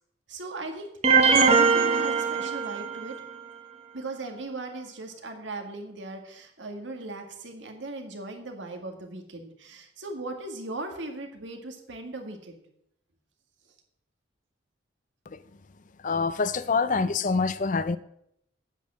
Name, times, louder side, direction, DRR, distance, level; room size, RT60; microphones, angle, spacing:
voice 1, 0.3-3.2 3.9-12.6, right 2 dB, 75° right, 1.9 m, -38 dB
sound 1, 1.0-3.1, right 5 dB, 35° right, 0.9 m, -21 dB
voice 2, 16.0-18.0, left 4 dB, 40° left, 0.5 m, -25 dB
8.9 x 8.6 x 6.2 m
head